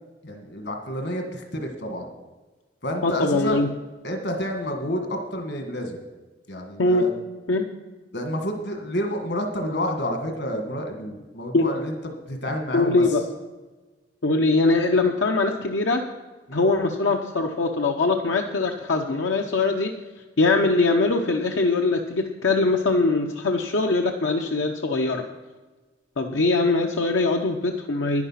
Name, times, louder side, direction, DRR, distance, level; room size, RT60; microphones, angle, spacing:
voice 1, 0.2-2.1 2.8-3.6 4.0-6.0 6.5-7.1 8.1-13.0 16.5-16.7, equal, 65° left, 4 dB, 1.7 m, -29 dB
voice 2, 3.0-3.7 6.8-7.0 7.5-7.6 11.5-11.6 12.7-13.2 14.2-16.1 16.5-19.9 20.4-25.2 26.2-28.3, left 3 dB, 85° left, 3 dB, 0.8 m, -22 dB
10.5 x 10.0 x 5.7 m, 1.2 s
head